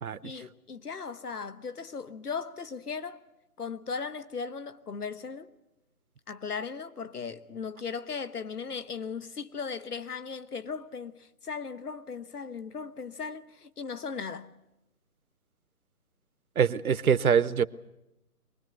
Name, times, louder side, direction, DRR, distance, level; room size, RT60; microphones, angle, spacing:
voice 1, 0.2-3.2 3.6-5.5 6.3-14.5, left 5 dB, 85° left, 1.3 m, -37 dB
voice 2, 16.6-17.6, right 7 dB, 70° right, 0.9 m, -24 dB
23.5 x 20.0 x 8.1 m
figure-of-eight pair, 155°, 45 cm